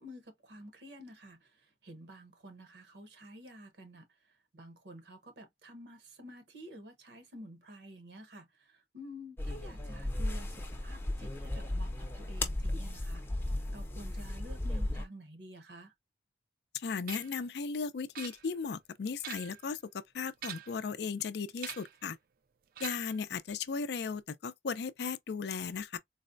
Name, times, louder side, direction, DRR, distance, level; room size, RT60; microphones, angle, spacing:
voice 1, 0.0-13.2 13.5-15.9, equal, 65° right, 0.9 m, -50 dB
sound 1, 9.4-15.0, left 1 dB, 10° left, 0.6 m, -35 dB
voice 2, 16.7-22.2 22.8-26.0, left 5 dB, 65° left, 0.4 m, -36 dB
sound 2, 17.1-17.4 18.1-18.7 19.1-19.7 20.3-20.9 21.6-22.0 22.7-23.2, right 10 dB, 50° right, 0.4 m, -45 dB
4.0 x 2.1 x 2.5 m
head